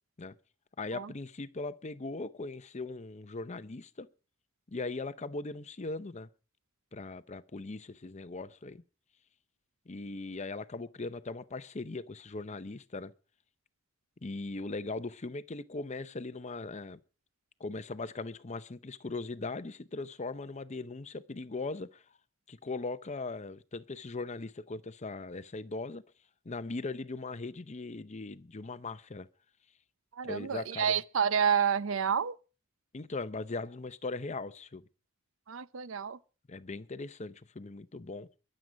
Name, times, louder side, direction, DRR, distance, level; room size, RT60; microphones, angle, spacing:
voice 1, 0.8-4.1 4.7-6.3 6.9-8.8 9.9-13.1 14.2-17.0 17.6-22.0 22.5-26.0 26.4-29.3 30.2-30.9 32.9-34.8 36.5-38.3, left 3 dB, 35° left, 0.7 m, -39 dB
voice 2, 30.1-32.4 35.5-36.2, right 7 dB, 75° right, 0.6 m, -29 dB
23.0 x 7.7 x 5.1 m
head